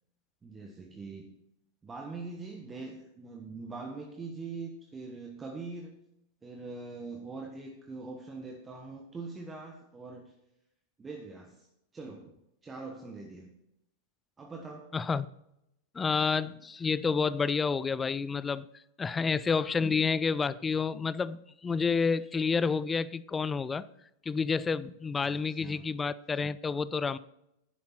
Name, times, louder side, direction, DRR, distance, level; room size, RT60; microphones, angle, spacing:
voice 1, 0.4-1.3 1.8-5.9 6.4-10.3 11.0-11.7 11.9-12.3 12.6-13.5 14.4-14.9 25.2-25.8, right 3 dB, 15° right, 1 dB, 1.3 m, -43 dB
voice 2, 14.9-15.3 15.9-18.7 19.0-23.9 24.3-27.2, left 5 dB, 15° left, 19 dB, 0.4 m, -29 dB
11.0 x 9.4 x 4.3 m, 0.82 s
figure-of-eight pair, 90°, 0 cm